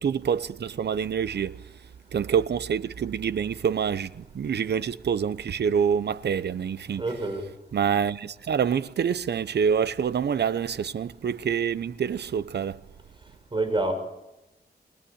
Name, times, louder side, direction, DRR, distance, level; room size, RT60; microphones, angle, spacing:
voice 1, 0.0-1.6 2.1-7.0 7.7-12.8, right 7 dB, 75° right, 0.9 m, -26 dB
voice 2, 7.0-7.4 13.5-13.9, right 2 dB, 30° right, 6.1 m, -27 dB
30.0 x 22.0 x 8.7 m
wide cardioid pair, 125°, 17 cm